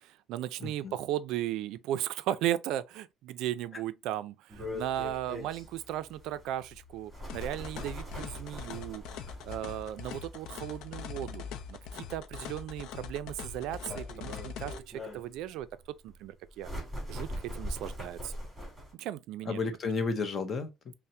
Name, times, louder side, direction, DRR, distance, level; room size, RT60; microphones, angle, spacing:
voice 1, 0.0-9.0 9.4-16.7 17.1-18.3 19.0-19.6, right 12 dB, 80° right, 0.4 m, -36 dB
voice 2, 0.6-0.9 19.4-20.9, left 4 dB, 30° left, 0.7 m, -32 dB
sound 1, 4.5-18.9, equal, 5° right, 2.0 m, -43 dB
sound 2, 7.3-14.8, left 7 dB, 90° left, 0.5 m, -42 dB
5.6 x 2.1 x 2.6 m
cardioid pair, 170°, 0 cm